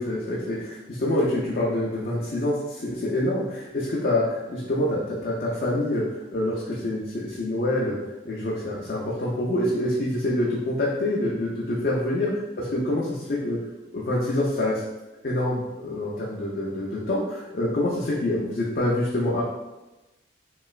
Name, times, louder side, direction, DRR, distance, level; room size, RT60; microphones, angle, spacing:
voice 1, 0.0-8.0 8.3-12.3 12.6-13.6 13.9-14.8 15.2-19.4, left 1 dB, 50° left, -5 dB, 0.4 m, -26 dB
3.0 x 2.9 x 2.4 m, 1.1 s
head